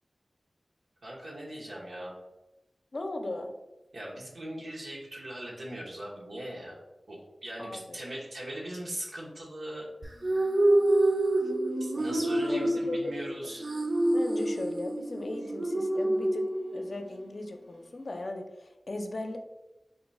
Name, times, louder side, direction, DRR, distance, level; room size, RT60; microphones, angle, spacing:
voice 1, 1.0-2.2 3.9-6.8 7.1-9.9 11.8-13.7, right 1 dB, 90° right, -4 dB, 1.0 m, -40 dB
voice 2, 2.9-3.5 7.6-8.0 12.5-13.2 14.1-19.4, left 2 dB, 60° left, 4 dB, 0.5 m, -37 dB
sound 1, 10.0-17.1, right 1 dB, 55° right, 0.6 m, -27 dB
3.8 x 2.3 x 4.0 m, 1.0 s
cardioid pair, 45°, 0 cm